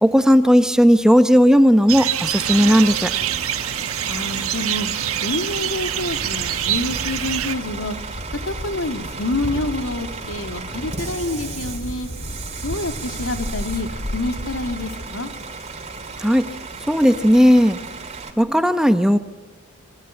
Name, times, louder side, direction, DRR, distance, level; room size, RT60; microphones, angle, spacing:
voice 1, 0.0-3.1 16.2-16.4 16.9-17.8 18.4-19.2, equal, 5° right, 9 dB, 0.9 m, -15 dB
sound 1, 1.9-7.6, right 11 dB, 85° right, 1.2 m, -25 dB
Bus / Idling, 2.3-18.3, right 4 dB, 30° right, 3.1 m, -35 dB
voice 2, 4.1-4.9 5.2-8.0 8.5-12.1 12.6-15.3, left 2 dB, 70° left, 7 dB, 2.3 m, -27 dB
Thunder, 6.1-15.1, left 1 dB, 55° left, 2.3 m, -34 dB
28.0 x 23.0 x 9.1 m, 1.2 s
head